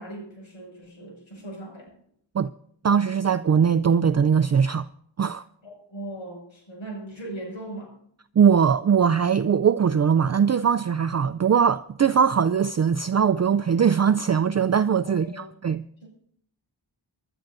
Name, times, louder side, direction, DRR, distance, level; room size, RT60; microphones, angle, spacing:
voice 1, 0.0-1.9 5.6-7.9 15.0-15.6 16.0-16.1, right 1 dB, 80° left, 6.1 m, -39 dB
voice 2, 2.8-4.8 5.2-5.4 8.4-15.8, right 7 dB, 35° right, 0.4 m, -21 dB
25.5 x 12.0 x 2.6 m
wide cardioid pair, 55°, 47 cm